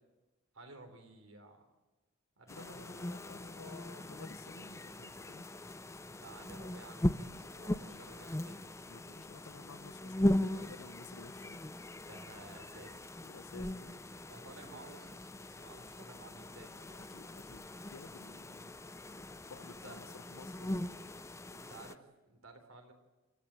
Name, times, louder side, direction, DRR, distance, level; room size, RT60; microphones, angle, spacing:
voice 1, 0.5-1.7 2.4-3.0 6.0-8.7 11.7-13.1 14.3-16.8 19.6-20.0 21.5-22.9, right 2 dB, 75° right, 3.7 m, -54 dB
voice 2, 2.5-5.5 8.9-11.6 13.2-13.9 16.8-18.7 19.1-20.8, left 4 dB, 85° left, 0.9 m, -53 dB
sound 1, 2.5-21.9, left 1 dB, 15° left, 0.6 m, -39 dB
29.0 x 13.5 x 8.8 m
head